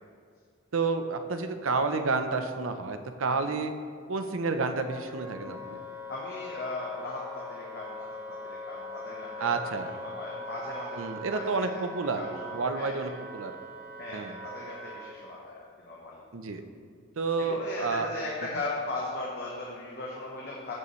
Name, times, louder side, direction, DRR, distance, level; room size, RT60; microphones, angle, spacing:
voice 1, 0.7-3.7 4.1-5.6 9.4-9.9 11.0-13.5 14.1-14.4 16.3-16.6 17.2-18.1, right 4 dB, 70° right, 8 dB, 0.6 m, -30 dB
Wind instrument woodwind instrument, 4.8-15.1, equal, 10° right, 1.4 m, -42 dB
voice 2, 6.1-8.0 8.3-9.5 9.9-11.8 12.1-12.3 12.6-13.1 14.0-16.2 17.4-20.7, left 2 dB, 50° left, -4 dB, 1.1 m, -38 dB
14.5 x 5.5 x 3.2 m, 2.2 s
head